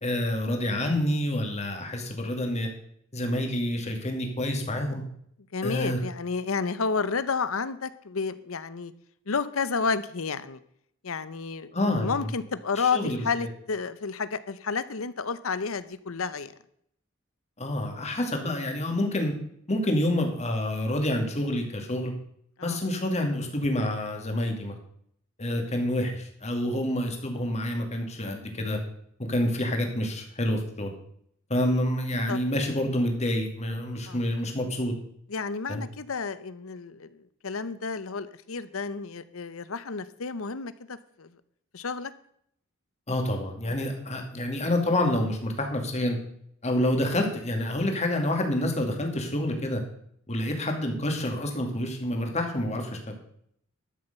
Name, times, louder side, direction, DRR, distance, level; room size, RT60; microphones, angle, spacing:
voice 1, 0.0-2.7 3.1-5.0 5.6-6.0 11.7-12.3 12.8-13.5 17.6-19.3 19.7-22.1 22.6-24.8 25.4-28.8 29.2-30.9 31.5-34.9 35.7-35.8 43.1-46.2 46.6-49.8 50.3-53.1, left 1 dB, 35° left, 3 dB, 2.4 m, -28 dB
voice 2, 5.5-8.9 9.3-10.6 11.0-11.7 12.0-16.5 22.6-22.8 32.3-32.4 34.1-34.2 35.3-37.2 37.4-41.3 41.7-42.1 43.6-43.8, left 5 dB, 70° left, 15 dB, 0.8 m, -31 dB
12.5 x 7.0 x 6.8 m, 0.69 s
head